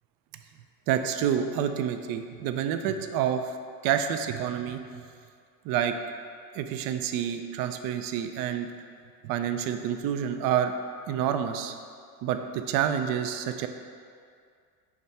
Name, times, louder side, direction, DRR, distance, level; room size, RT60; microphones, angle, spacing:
voice 1, 0.9-3.6 3.8-4.8 5.6-6.0 6.5-8.7 9.2-10.7 11.1-11.8 12.2-13.7, right 9 dB, 45° right, 7 dB, 0.5 m, -28 dB
5.9 x 3.1 x 5.3 m, 2.2 s
hypercardioid pair, 75°, 49 cm